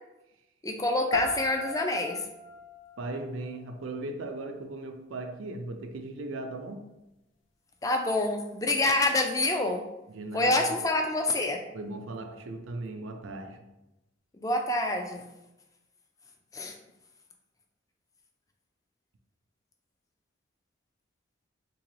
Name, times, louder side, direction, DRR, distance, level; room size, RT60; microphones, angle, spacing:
voice 1, 0.6-2.2 7.8-9.8 10.3-11.6 14.4-15.2 16.5-16.7, left 2 dB, 15° left, 3 dB, 0.3 m, -27 dB
sound 1, 1.1-4.1, left 3 dB, 80° left, 0.6 m, -37 dB
voice 2, 3.0-6.8 10.1-10.8 11.7-13.6, right 2 dB, 85° right, 5 dB, 0.5 m, -38 dB
3.8 x 2.9 x 3.1 m, 0.95 s
head